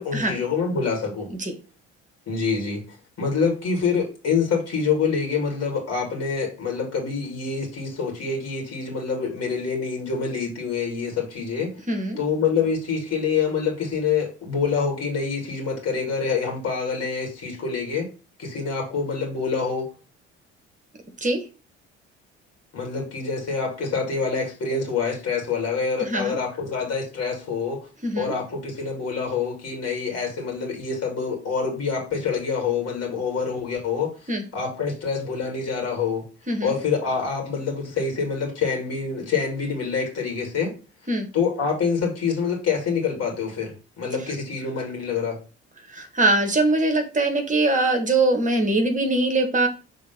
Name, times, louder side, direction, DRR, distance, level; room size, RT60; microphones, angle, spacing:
voice 1, 0.0-1.3 2.3-2.8 3.2-11.7 12.2-18.1 18.4-19.9 22.7-27.8 28.2-34.1 34.5-36.2 36.6-40.7 41.3-45.4, left 5 dB, 40° left, 1 dB, 2.4 m, -26 dB
voice 2, 11.9-12.2 21.2-21.4 26.0-26.3 28.0-28.3 34.3-34.4 36.5-36.7 41.1-41.3 45.9-49.7, right 2 dB, 20° right, 4 dB, 1.6 m, -22 dB
5.6 x 3.4 x 5.3 m, 0.34 s
figure-of-eight pair, 50°, 35 cm